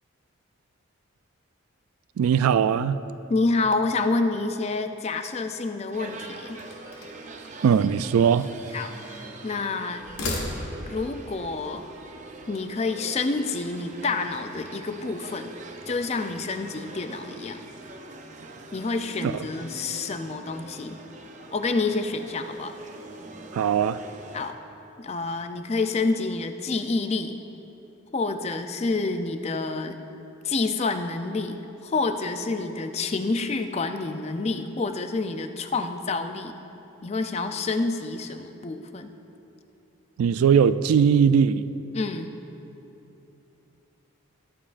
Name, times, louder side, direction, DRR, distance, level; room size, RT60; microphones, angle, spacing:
voice 1, 2.2-3.0 7.6-8.5 19.2-19.3 23.5-24.0 40.2-41.6, right 7 dB, 85° right, 15 dB, 0.3 m, -20 dB
voice 2, 3.3-6.6 8.7-10.5 10.9-11.8 12.5-15.5 15.9-17.6 18.7-21.0 21.5-22.7 24.3-24.6 25.0-27.4 28.1-30.0 30.4-36.5 37.0-39.1 41.9-42.3, left 3 dB, 30° left, 8 dB, 0.4 m, -28 dB
sound 1, 5.9-24.5, right 2 dB, 35° right, 0.6 m, -43 dB
sound 2, 6.6-7.3 8.2-9.3 10.0-11.0, left 2 dB, 80° left, 1.5 m, -35 dB
20.0 x 7.2 x 2.5 m, 2.9 s
head